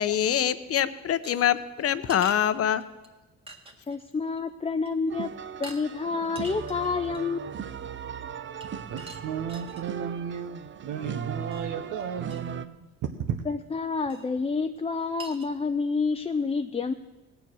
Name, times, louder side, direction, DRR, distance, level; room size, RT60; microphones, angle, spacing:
voice 1, 0.0-2.8, left 10 dB, 50° left, 14 dB, 0.7 m, -25 dB
sound 1, 1.2-3.1 3.5-4.0 4.4-4.5 4.8-5.1 5.6-5.8 6.2-7.4 8.6-9.9 11.5-11.7 12.0-12.1 12.3-12.4 14.1-14.3 14.8-14.9 15.2-15.5, right 1 dB, 20° right, 1.8 m, -44 dB
voice 2, 3.9-5.3 5.6-7.7 13.5-16.9, left 4 dB, 20° left, 8 dB, 0.5 m, -29 dB
sound 2, 5.1-12.7, right 8 dB, 40° right, 0.6 m, -38 dB
voice 3, 8.9-12.9 13.2-13.4, right 7 dB, 90° right, 4 dB, 0.9 m, -34 dB
18.0 x 7.1 x 6.2 m, 1.1 s
cardioid pair, 90°, 30 cm